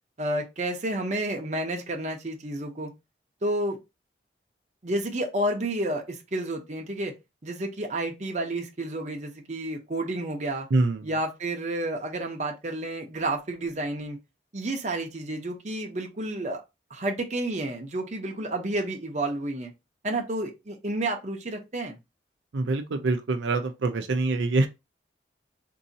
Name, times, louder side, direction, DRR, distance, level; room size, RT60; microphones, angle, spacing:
voice 1, 0.2-2.9 3.4-3.8 4.8-7.1 7.4-10.7 11.0-14.2 14.5-16.6 16.9-19.7 20.0-22.0, right 1 dB, 40° right, 0.7 m, -30 dB
voice 2, 10.7-11.0 22.5-24.7, right 3 dB, 85° right, 0.5 m, -25 dB
3.8 x 2.7 x 2.7 m
head